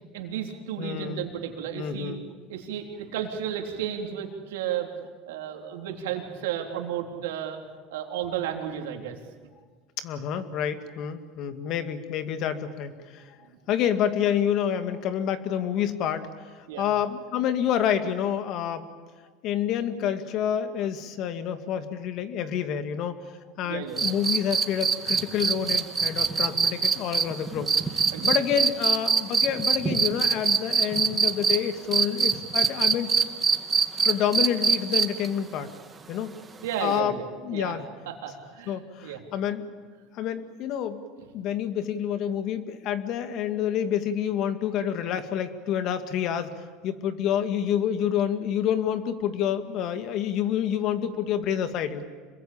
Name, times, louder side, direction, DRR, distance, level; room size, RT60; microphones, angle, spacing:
voice 1, 0.1-2.1 2.5-4.9 5.3-7.6 7.9-9.2 16.7-16.9 23.6-24.1 28.1-28.3 36.6-37.2 37.5-37.8 38.1-39.2, right 9 dB, 85° right, 3 dB, 3.6 m, -33 dB
voice 2, 0.8-1.3 1.7-2.2 10.0-13.4 13.7-16.3 16.5-18.9 19.4-23.2 23.6-33.1 34.0-35.7 36.1-36.3 36.8-37.9 38.7-39.7 40.1-41.0 41.3-46.5 46.8-52.0, left 9 dB, 55° left, 9 dB, 2.2 m, -28 dB
sound 1, 24.0-31.6 31.9-35.3 36.9-37.0, right 5 dB, 25° right, 2.2 m, -22 dB
26.5 x 22.0 x 8.8 m, 1.5 s
supercardioid pair, 105°, 0 cm